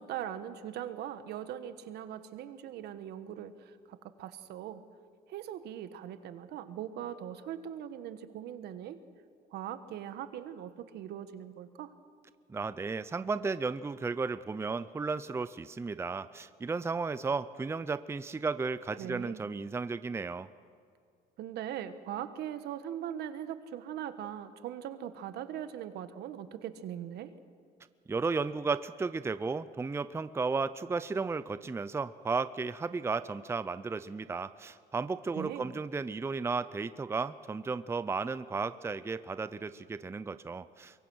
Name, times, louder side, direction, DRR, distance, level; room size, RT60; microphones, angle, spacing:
voice 1, 0.0-3.5 3.9-4.8 5.3-9.0 9.5-11.9 19.0-19.4 21.4-27.3 35.3-35.7, right 10 dB, 75° right, 11 dB, 1.3 m, -40 dB
voice 2, 12.5-20.5 28.1-41.1, right 4 dB, 15° right, 14 dB, 0.5 m, -34 dB
23.5 x 23.0 x 6.3 m, 2.2 s
cardioid pair, 110°, 17 cm